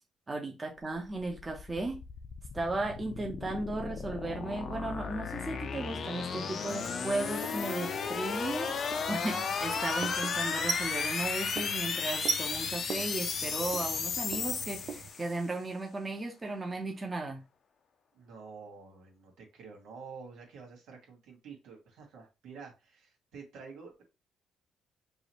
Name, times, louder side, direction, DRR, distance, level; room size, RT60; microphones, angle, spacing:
voice 1, 0.3-2.0 2.5-17.4, right 2 dB, 25° right, 0.9 m, -36 dB
sound 1, 0.9-15.5, left 6 dB, 55° left, 0.5 m, -35 dB
Writing, 6.6-15.1, right 5 dB, 50° right, 0.6 m, -41 dB
voice 2, 18.1-24.0, right 5 dB, 85° right, 1.8 m, -49 dB
4.8 x 2.5 x 3.1 m
cardioid pair, 90°, 0 cm